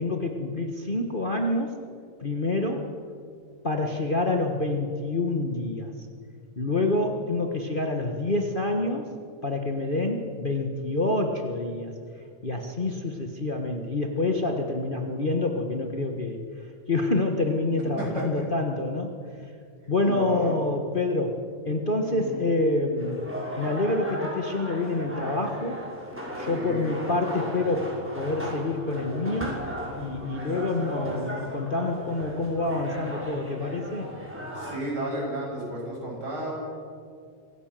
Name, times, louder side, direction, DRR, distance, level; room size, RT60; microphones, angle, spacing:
voice 1, 0.0-1.7 2.2-2.9 3.6-5.9 6.6-9.1 9.4-11.9 12.4-19.1 19.9-23.2 23.6-25.8 26.4-29.6 30.0-34.1, left 2 dB, 80° left, 3 dB, 0.4 m, -27 dB
voice 2, 20.0-20.6 22.0-22.5 26.3-27.0 34.5-36.6, right 1 dB, 30° right, -3 dB, 8.6 m, -33 dB
sound 1, 23.0-34.8, equal, 5° right, 5.8 m, -36 dB
25.0 x 17.5 x 7.6 m, 2.3 s
omnidirectional pair, 3.5 m